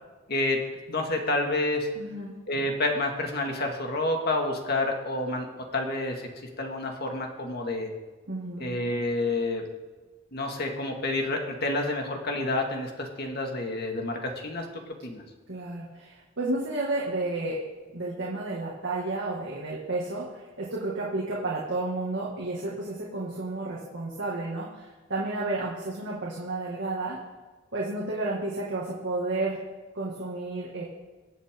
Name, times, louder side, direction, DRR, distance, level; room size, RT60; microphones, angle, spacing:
voice 1, 0.3-0.6 0.9-1.9 2.5-5.5 5.7-6.3 6.6-7.9 8.6-9.6 10.3-15.2, left 2 dB, 55° left, 2 dB, 2.0 m, -29 dB
voice 2, 2.0-2.3 8.3-8.7 15.5-17.6 17.9-27.2 27.7-29.6 29.9-30.8, right 2 dB, 65° right, -5 dB, 2.2 m, -31 dB
23.5 x 8.2 x 3.8 m, 1.3 s
head